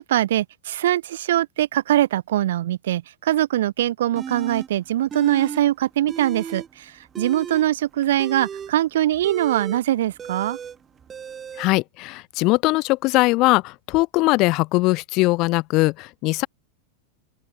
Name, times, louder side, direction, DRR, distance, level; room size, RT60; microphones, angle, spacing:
voice 1, 0.0-10.6, right 13 dB, 60° right, 0.3 m, -22 dB
sound 1, 4.2-4.7 5.1-5.6 5.9-6.7 7.0-11.7, right 7 dB, 20° right, 3.3 m, -35 dB
voice 2, 11.6-16.5, left 22 dB, 40° left, 1.5 m, -20 dB
open air
figure-of-eight pair, 90°, 0 cm